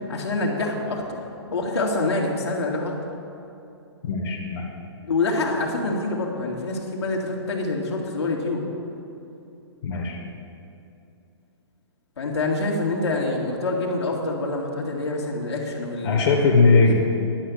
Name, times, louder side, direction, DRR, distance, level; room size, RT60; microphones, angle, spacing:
voice 1, 0.1-1.2 1.5-2.9 5.0-8.6 12.2-16.2 16.6-17.0, left 2 dB, 75° left, -2 dB, 2.1 m, -26 dB
voice 2, 4.0-4.6 9.8-10.2 16.0-17.0, left 3 dB, 50° left, -2 dB, 1.8 m, -19 dB
11.0 x 5.7 x 8.2 m, 2.7 s
hypercardioid pair, 130°, 14 cm